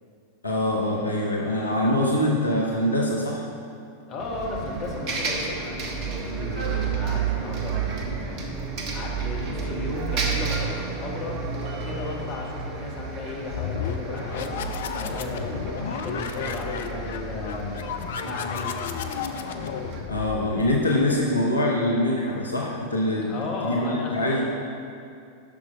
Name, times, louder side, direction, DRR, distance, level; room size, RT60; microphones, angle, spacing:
voice 1, 0.4-3.4 20.1-23.3 23.6-24.4, left 1 dB, 80° left, -2 dB, 0.9 m, -24 dB
voice 2, 4.1-8.4 8.9-11.4 11.8-14.6 14.9-17.9 18.2-18.8 23.2-24.4, left 2 dB, 40° left, -2 dB, 1.5 m, -35 dB
Bus, 4.2-20.0, right 5 dB, 40° right, 1.1 m, -31 dB
sound 1, 13.2-20.9, left 7 dB, 60° left, 0.4 m, -32 dB
8.6 x 6.1 x 4.7 m, 2.4 s
figure-of-eight pair, 90°, 0 cm